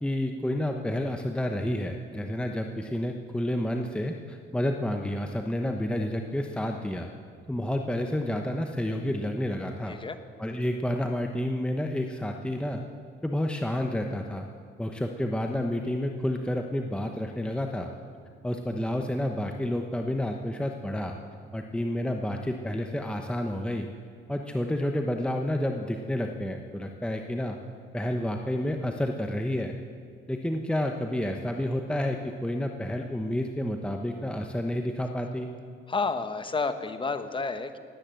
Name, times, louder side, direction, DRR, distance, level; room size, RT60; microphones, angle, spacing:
voice 1, 0.0-7.1 7.5-10.0 10.4-12.8 13.2-14.5 14.8-17.9 18.4-21.2 21.5-23.9 24.3-27.6 27.9-29.8 30.3-35.5, left 1 dB, 5° left, 4 dB, 1.0 m, -30 dB
voice 2, 35.9-37.8, left 4 dB, 25° left, 10 dB, 1.1 m, -30 dB
18.0 x 9.7 x 7.8 m, 2.2 s
cardioid pair, 90°, 20 cm